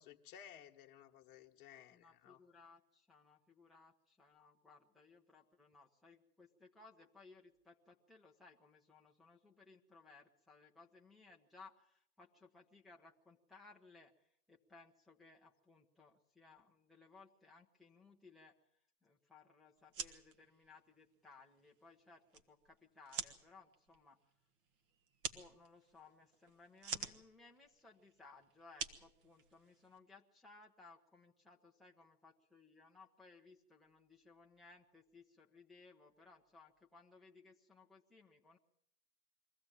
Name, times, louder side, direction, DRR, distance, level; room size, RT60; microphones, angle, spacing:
voice 1, 0.0-2.4, left 9 dB, 35° left, 3 dB, 1.6 m, -57 dB
voice 2, 1.9-14.1 14.5-18.5 19.0-24.2 25.3-38.6, left 3 dB, ahead, -2 dB, 0.9 m, -62 dB
sound 1, 19.8-30.0, right 6 dB, 35° right, 1.5 m, -49 dB
22.5 x 15.0 x 8.9 m, 0.67 s
hypercardioid pair, 135°, 45 cm